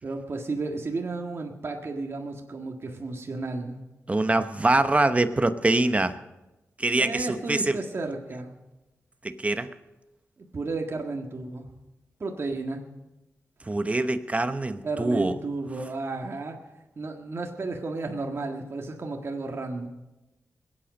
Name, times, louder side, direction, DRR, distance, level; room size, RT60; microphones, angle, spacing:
voice 1, 0.0-3.8 6.9-8.5 10.5-11.6 12.2-12.8 14.8-16.6 17.0-19.9, right 3 dB, 50° right, 1 dB, 1.7 m, -33 dB
voice 2, 4.1-6.2 6.8-7.8 9.2-9.7 13.7-15.3, right 2 dB, 25° right, 10 dB, 1.0 m, -24 dB
21.5 x 8.8 x 5.3 m, 1.0 s
cardioid pair, 60°, 5 cm